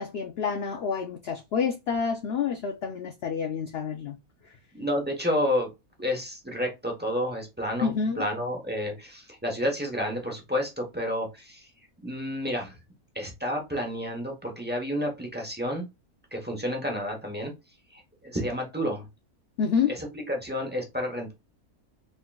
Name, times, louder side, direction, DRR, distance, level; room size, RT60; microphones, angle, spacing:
voice 1, 0.0-4.2 4.4-4.5 7.8-8.3 19.6-19.9, left 6 dB, 65° left, 0.6 m, -28 dB
voice 2, 4.7-5.7 6.0-7.9 8.2-11.7 12.0-12.8 13.1-15.9 16.3-17.5 17.9-19.1 20.0-21.3, equal, 10° right, 0.7 m, -30 dB
3.8 x 3.6 x 2.3 m
omnidirectional pair, 1.5 m